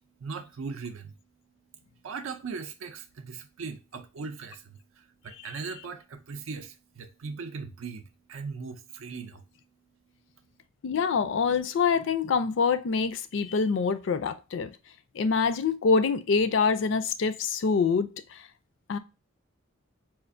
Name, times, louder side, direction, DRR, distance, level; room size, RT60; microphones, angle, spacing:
voice 1, 0.2-1.1 2.0-8.0 8.3-9.4, right 5 dB, 70° right, 0.4 m, -39 dB
voice 2, 10.8-14.7 15.1-18.5 18.9-19.0, left 5 dB, 60° left, 0.4 m, -25 dB
4.3 x 2.4 x 2.5 m
head